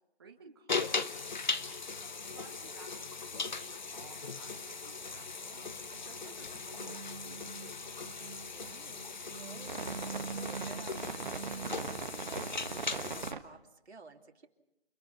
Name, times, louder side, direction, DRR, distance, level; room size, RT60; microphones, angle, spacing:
voice 1, 0.2-1.5 2.3-5.6 5.9-7.5, right 5 dB, 25° right, 0 dB, 1.4 m, -56 dB
sound 1, 0.7-13.3, left 4 dB, 45° left, 1.0 m, -39 dB
sound 2, 5.6-6.0 6.3-13.4, right 5 dB, 45° right, 1.2 m, -41 dB
sound 3, 7.6-8.4 10.5-10.7 11.0-11.2 11.5-12.1, left 1 dB, 20° left, 3.5 m, -67 dB
voice 2, 8.5-12.0 12.3-14.5, right 4 dB, 80° right, 3 dB, 2.9 m, -54 dB
30.0 x 28.0 x 4.2 m, 0.88 s
hypercardioid pair, 175°, 32 cm